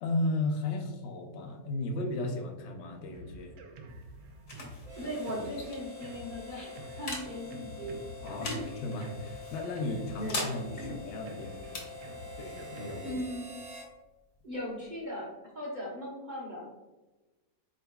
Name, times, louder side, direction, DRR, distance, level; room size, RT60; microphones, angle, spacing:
voice 1, 0.0-3.5 8.2-8.5 8.8-11.9 12.3-13.2, left 2 dB, 70° left, 3 dB, 0.6 m, -35 dB
Drum kit, 3.1-13.2, right 1 dB, 80° right, 1.3 m, -48 dB
sound 1, 3.7-15.0, left 2 dB, 50° left, 1.1 m, -44 dB
Harmonica, 4.8-13.9, left 3 dB, 60° right, 1.1 m, -46 dB
voice 2, 5.0-8.0 8.4-8.6 10.1-10.4 10.8-10.9 13.0-13.5 14.4-15.3 15.5-16.7, equal, 35° right, -5 dB, 0.9 m, -38 dB
4.5 x 3.8 x 2.3 m, 1.1 s
omnidirectional pair, 1.9 m